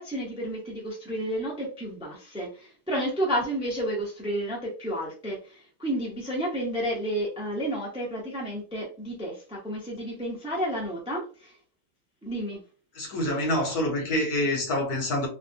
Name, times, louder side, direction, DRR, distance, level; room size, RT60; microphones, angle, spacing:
voice 1, 0.0-11.6 12.2-12.6, equal, 5° right, 0.7 m, -31 dB
voice 2, 12.9-15.3, left 1 dB, 65° left, 1.5 m, -26 dB
3.4 x 2.2 x 2.6 m
omnidirectional pair, 1.8 m